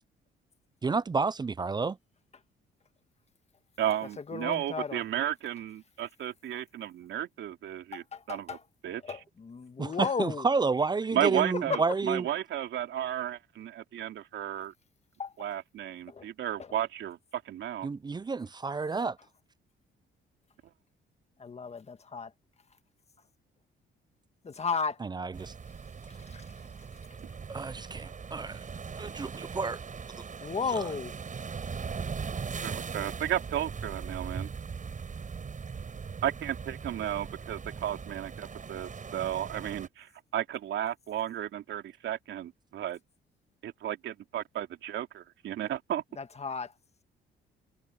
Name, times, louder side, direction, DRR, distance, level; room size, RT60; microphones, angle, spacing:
voice 1, 0.8-2.0 9.8-12.3 17.8-19.2 25.0-25.5 27.5-28.6 29.0-29.8 30.8-30.9, right 4 dB, 20° right, 0.4 m, -30 dB
voice 2, 3.8-8.6 8.8-9.2 11.1-14.7 15.4-17.9 32.6-34.5 36.2-43.0 43.6-46.0, right 11 dB, 75° right, 3.0 m, -34 dB
voice 3, 4.3-5.0 7.9-8.6 9.0-10.5 11.7-11.8 15.2-15.3 16.1-16.3 16.6-16.7 21.4-22.3 24.4-25.0 26.2-26.5 30.4-31.2 46.2-46.7, left 5 dB, 35° left, 1.6 m, -34 dB
sound 1, 25.3-39.9, right 5 dB, 40° right, 6.3 m, -40 dB
cardioid pair, 90°, 20 cm